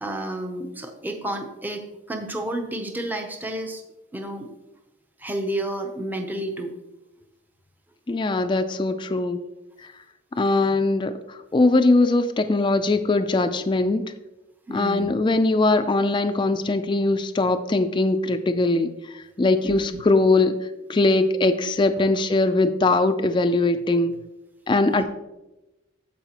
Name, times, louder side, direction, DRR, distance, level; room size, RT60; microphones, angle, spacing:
voice 1, 0.0-3.8 4.1-4.5 5.2-6.7 14.7-15.1 19.6-20.0 22.0-22.1 24.9-25.0, right 1 dB, 10° right, 4 dB, 0.6 m, -31 dB
voice 2, 8.1-9.4 10.4-14.0 14.7-20.6 20.9-24.1 24.7-25.0, left 2 dB, 25° left, 8 dB, 0.4 m, -21 dB
14.0 x 4.8 x 2.9 m, 0.99 s
head